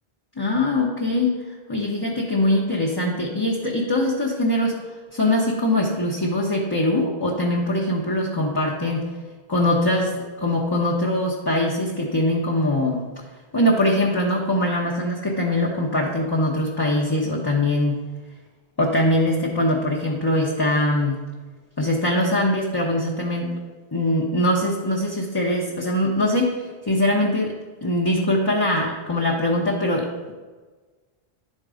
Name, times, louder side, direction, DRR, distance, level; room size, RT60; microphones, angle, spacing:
voice 1, 0.4-1.4 1.7-4.8 5.1-9.1 9.5-13.0 13.5-18.1 18.8-21.2 21.8-23.6 23.9-27.5 27.8-30.3, left 1 dB, 25° left, -3 dB, 0.9 m, -22 dB
11.0 x 4.0 x 4.9 m, 1.3 s
omnidirectional pair, 1.1 m